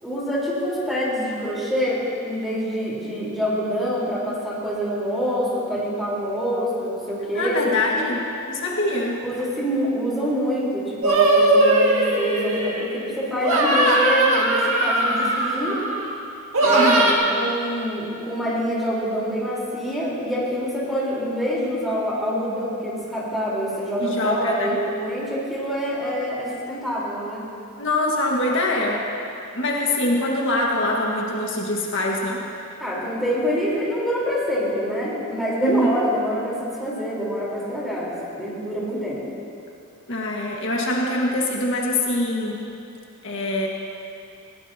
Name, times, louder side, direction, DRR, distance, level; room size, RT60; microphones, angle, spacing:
voice 1, 0.0-7.6 9.2-15.8 16.6-27.4 32.8-39.2, equal, ahead, -7 dB, 4.2 m, -26 dB
voice 2, 7.3-9.2 16.6-17.1 24.0-24.8 27.8-29.1 29.5-32.4 35.6-35.9 40.1-42.6 43.2-43.7, left 1 dB, 60° left, -2 dB, 1.8 m, -23 dB
sound 1, 11.0-13.0 13.4-16.1 16.5-17.1, right 2 dB, 70° right, 2.1 m, -19 dB
20.5 x 17.0 x 2.9 m, 2.7 s
head